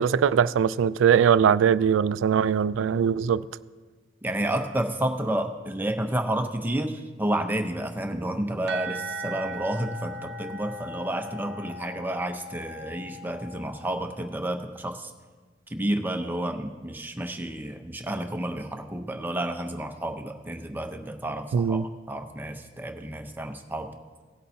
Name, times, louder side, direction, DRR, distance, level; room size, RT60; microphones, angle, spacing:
voice 1, 0.0-3.4 21.5-21.8, right 8 dB, 90° right, 0.3 m, -21 dB
voice 2, 4.2-15.1 15.7-21.8 22.1-23.9, right 1 dB, 10° right, 0.7 m, -30 dB
sound 1, 8.7-14.3, right 1 dB, 60° right, 0.9 m, -39 dB
17.5 x 8.5 x 2.8 m
head